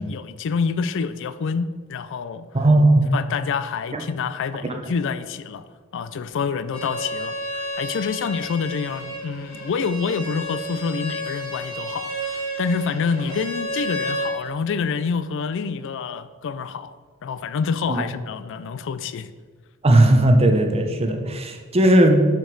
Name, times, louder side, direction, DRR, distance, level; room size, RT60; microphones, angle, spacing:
voice 1, 0.0-2.5 3.1-5.6 5.9-16.9 17.2-19.3, left 5 dB, 60° left, 14 dB, 0.4 m, -27 dB
voice 2, 2.5-3.1 3.9-4.0 17.9-18.0 19.8-22.2, right 1 dB, 30° right, 4 dB, 0.8 m, -16 dB
Bowed string instrument, 6.7-14.3, equal, 80° left, 2.3 m, -31 dB
6.3 x 5.2 x 6.0 m, 1.5 s
head